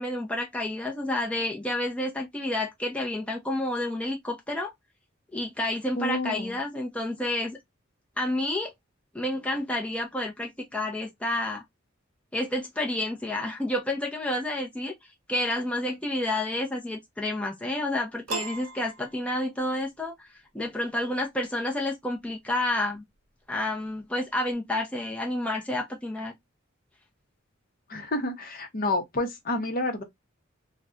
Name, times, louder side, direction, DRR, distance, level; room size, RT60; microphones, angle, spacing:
voice 1, 0.0-4.7 5.3-7.6 8.2-8.7 9.1-11.6 12.3-14.9 15.3-20.3 20.5-23.0 23.5-26.3, left 1 dB, 5° left, 0.5 m, -30 dB
voice 2, 6.0-6.6 27.9-30.0, left 1 dB, 45° left, 0.7 m, -29 dB
Piano, 18.3-19.8, right 4 dB, 80° right, 0.5 m, -37 dB
2.4 x 2.1 x 3.6 m
head